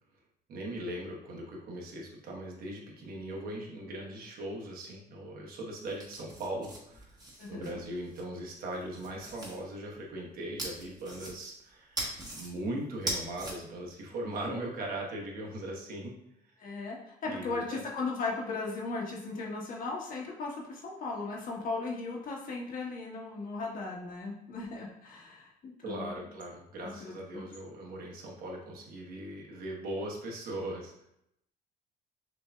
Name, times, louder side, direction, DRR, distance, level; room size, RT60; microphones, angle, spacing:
voice 1, 0.5-7.2 7.5-16.2 16.4-16.5 17.2-17.8 25.8-31.1, right 1 dB, 60° right, -1 dB, 1.1 m, -39 dB
sound 1, 5.8-8.2 8.7-9.6 10.6-11.6 12.0-12.5 12.9-13.5, right 1 dB, 25° right, 1.2 m, -39 dB
voice 2, 7.4-7.8 16.6-26.1 26.8-27.5, left 3 dB, 55° left, -1 dB, 1.2 m, -37 dB
6.2 x 2.6 x 2.3 m, 0.78 s
cardioid pair, 110°, 17 cm